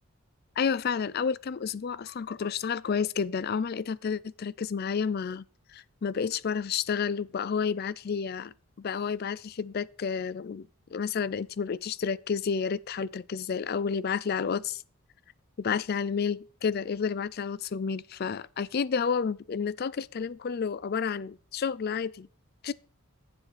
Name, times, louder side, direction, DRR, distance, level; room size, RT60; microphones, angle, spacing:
voice 1, 0.6-5.4 5.7-14.8 15.6-22.3 22.6-22.7, left 6 dB, 45° left, 0.4 m, -30 dB
13.5 x 7.3 x 4.2 m
head